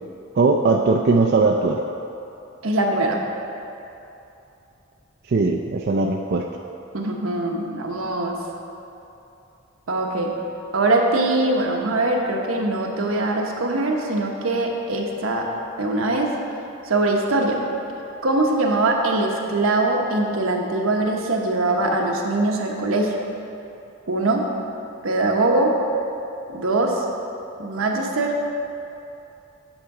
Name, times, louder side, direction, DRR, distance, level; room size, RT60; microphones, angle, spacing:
voice 1, 0.3-1.8 5.3-6.4, right 3 dB, 50° right, 1 dB, 0.4 m, -19 dB
voice 2, 2.6-3.2 6.9-8.4 9.9-10.3 10.7-15.5 15.8-16.3 16.8-17.6 18.2-23.2 24.1-24.4 25.0-25.7 26.5-27.0 27.6-28.4, right 2 dB, 80° right, 1 dB, 1.0 m, -22 dB
8.6 x 6.3 x 4.8 m, 2.8 s
head